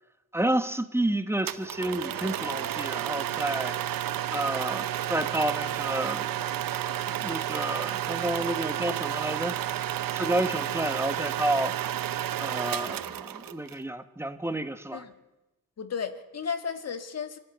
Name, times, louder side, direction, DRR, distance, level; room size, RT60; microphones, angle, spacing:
voice 1, 0.3-6.3 7.1-9.6 10.1-11.7 12.4-15.0, right 1 dB, 5° right, 10 dB, 1.0 m, -30 dB
sound 1, 1.5-13.8, right 11 dB, 85° right, 0.9 m, -31 dB
voice 2, 15.8-17.4, left 6 dB, 50° left, 8 dB, 1.7 m, -34 dB
25.5 x 13.0 x 9.1 m, 1.0 s
wide cardioid pair, 160°, 33 cm